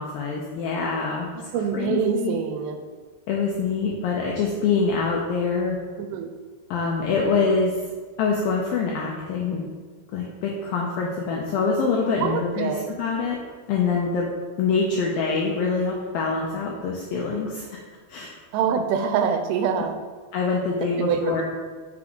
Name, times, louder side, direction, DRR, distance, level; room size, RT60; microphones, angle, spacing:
voice 1, 0.0-1.3 1.7-2.4 3.3-5.8 6.7-7.8 8.2-9.6 10.1-13.4 13.7-14.3 14.6-17.8 18.1-18.3 20.3-21.4, left 4 dB, 90° left, -2 dB, 2.0 m, -25 dB
voice 2, 1.3-2.8 6.0-6.3 12.2-12.9 18.5-20.0 21.0-21.4, right 7 dB, 85° right, 6 dB, 2.7 m, -25 dB
6.0 x 5.9 x 3.7 m, 1.5 s
omnidirectional pair, 4.9 m